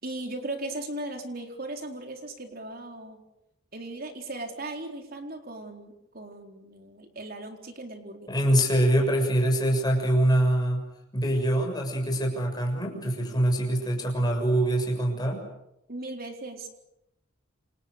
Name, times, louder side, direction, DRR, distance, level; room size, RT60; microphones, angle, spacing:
voice 1, 0.0-3.2 3.7-8.3 15.9-16.7, right 2 dB, 45° right, 4 dB, 4.1 m, -37 dB
voice 2, 8.3-10.8 11.1-15.4, right 1 dB, 20° left, 1 dB, 6.9 m, -24 dB
28.5 x 26.5 x 6.8 m, 0.84 s
head